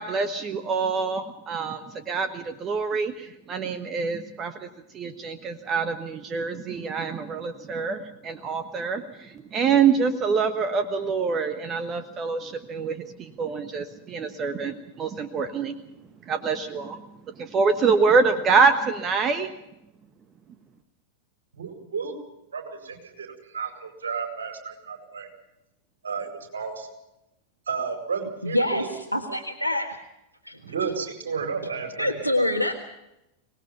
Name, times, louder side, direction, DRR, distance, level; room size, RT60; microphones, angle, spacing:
voice 1, 0.0-4.7 4.9-15.7 16.3-17.0 17.4-19.5, right 5 dB, 25° right, 10 dB, 1.3 m, -25 dB
voice 2, 21.6-22.1 22.5-23.3 23.5-25.3 26.0-26.9 27.7-28.9 30.6-32.2, right 5 dB, 65° right, 5 dB, 5.1 m, -32 dB
voice 3, 28.4-30.0 30.4-30.9 32.0-32.7, left 1 dB, 90° right, 6 dB, 1.6 m, -26 dB
24.5 x 19.5 x 5.7 m, 0.88 s
figure-of-eight pair, 90°, 0 cm